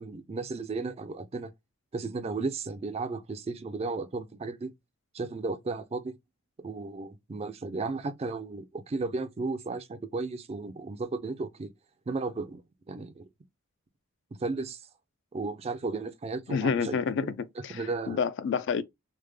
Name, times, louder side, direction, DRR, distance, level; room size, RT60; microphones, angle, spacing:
voice 1, 0.0-1.5 1.9-4.7 5.1-6.1 6.6-11.7 12.1-12.6 12.9-13.3 14.4-14.8 15.3-17.0 17.7-18.2, right 3 dB, 30° right, 0.4 m, -34 dB
voice 2, 16.5-18.8, left 6 dB, 60° left, 0.3 m, -29 dB
3.3 x 2.1 x 3.2 m
head